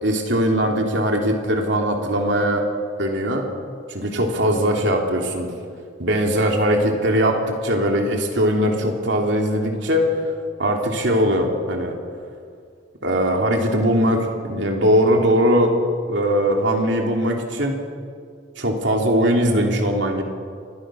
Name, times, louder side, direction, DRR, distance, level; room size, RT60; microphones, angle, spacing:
voice 1, 0.0-2.7 3.0-3.5 3.9-5.5 6.0-10.2 10.6-11.9 13.0-15.7 16.1-17.8 18.6-20.2, equal, 65° right, 2 dB, 3.3 m, -20 dB
29.0 x 24.0 x 6.4 m, 2.2 s
head